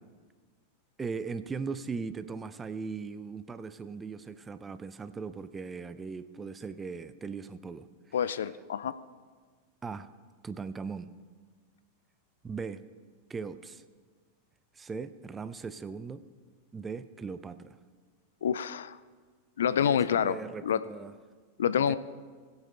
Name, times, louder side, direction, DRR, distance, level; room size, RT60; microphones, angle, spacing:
voice 1, 1.0-7.9 9.8-10.1 10.4-11.1 12.4-12.8 13.3-13.8 14.7-16.2 16.7-17.8 19.7-21.1 21.8-22.0, right 5 dB, 15° right, 13 dB, 0.5 m, -39 dB
voice 2, 8.1-9.0 18.4-19.0 19.6-20.8 21.6-22.0, left 8 dB, 65° left, 15 dB, 0.4 m, -27 dB
20.5 x 8.2 x 3.3 m, 1.5 s
figure-of-eight pair, 90°, 0 cm